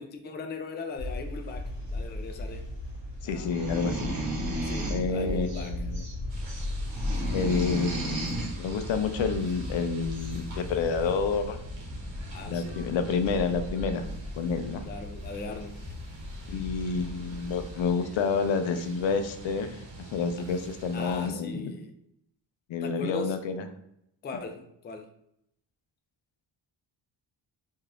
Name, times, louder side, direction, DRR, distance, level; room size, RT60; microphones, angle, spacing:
voice 1, 0.0-2.6 3.2-3.5 4.6-5.7 12.3-12.8 14.9-15.8 20.9-21.9 22.8-23.4 24.2-25.0, left 4 dB, 25° left, 4 dB, 0.3 m, -39 dB
sound 1, 0.9-17.9, left 1 dB, 60° left, 1.1 m, -37 dB
voice 2, 3.2-4.1 4.9-6.0 7.3-11.6 12.5-14.1 14.4-14.8 16.5-19.8 20.1-21.7 22.7-23.7, left 5 dB, 75° left, 8 dB, 0.5 m, -29 dB
sound 2, 3.4-5.1 5.5-6.1 6.5-8.5 9.7-9.8 10.1-10.4, right 1 dB, 50° right, 1.0 m, -34 dB
sound 3, 6.3-21.3, right 2 dB, 75° right, 1.0 m, -45 dB
2.6 x 2.3 x 3.2 m, 0.77 s
cardioid pair, 90°, 46 cm